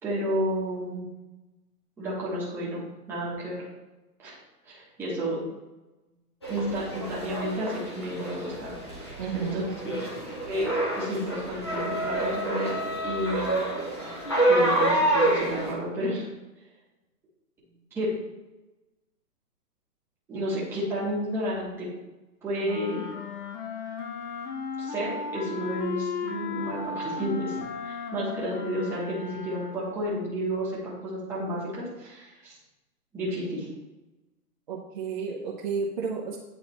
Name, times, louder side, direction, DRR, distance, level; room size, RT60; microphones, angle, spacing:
voice 1, 0.0-1.1 2.0-2.8 3.1-3.6 4.2-4.4 4.6-5.4 6.5-10.1 10.5-12.8 13.0-13.5 14.5-16.3 17.9-18.1 20.3-21.9 22.4-23.1 24.8-32.6 33.1-33.7, equal, 5° right, -8 dB, 0.9 m, -31 dB
sound 1, 6.4-15.7, right 1 dB, 20° left, 0.4 m, -28 dB
voice 2, 9.2-9.6 34.7-36.4, right 6 dB, 35° right, -4 dB, 0.6 m, -31 dB
sound 2, 22.6-30.0, left 5 dB, 70° left, 1.3 m, -35 dB
8.9 x 3.8 x 3.0 m, 1.1 s
hypercardioid pair, 160°, 46 cm